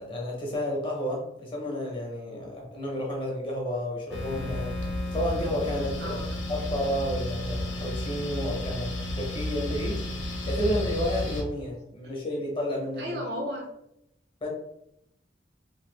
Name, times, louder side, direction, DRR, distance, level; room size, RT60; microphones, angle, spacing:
voice 1, 0.0-4.8 5.1-6.2 6.5-10.0 10.5-13.2 14.4-14.5, equal, 25° left, -2 dB, 0.8 m, -31 dB
sound 1, 4.1-11.4, left 1 dB, 75° left, 0.6 m, -32 dB
voice 2, 6.0-6.4 13.0-13.7, equal, 55° right, -1 dB, 0.5 m, -34 dB
2.7 x 2.5 x 3.2 m, 0.79 s
head